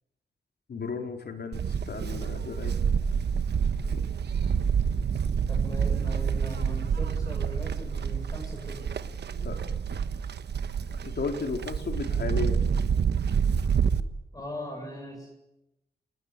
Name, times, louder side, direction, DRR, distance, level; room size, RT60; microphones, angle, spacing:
voice 1, 0.7-2.8 3.9-4.0 9.4-9.6 11.0-12.7, left 4 dB, 75° left, 4 dB, 4.3 m, -34 dB
Livestock farm animals working animals, 1.5-14.0, right 7 dB, 90° right, 1.2 m, -28 dB
voice 2, 5.5-8.9 14.3-15.3, equal, 20° left, 1 dB, 7.5 m, -39 dB
28.5 x 20.5 x 10.0 m, 0.92 s
wide cardioid pair, 110°, 17 cm